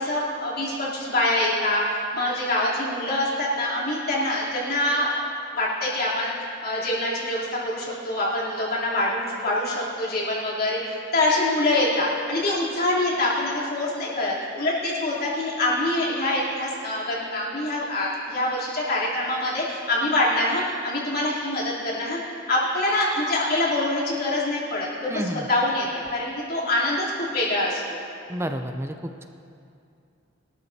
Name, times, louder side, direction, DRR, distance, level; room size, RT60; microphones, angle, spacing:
voice 1, 0.0-1.8 2.1-6.3 6.6-22.2 22.5-28.0, left 1 dB, 50° left, -7 dB, 3.4 m, -25 dB
voice 2, 25.1-25.5 28.3-29.3, equal, 10° right, 6 dB, 0.6 m, -30 dB
22.5 x 13.0 x 2.8 m, 2.6 s
head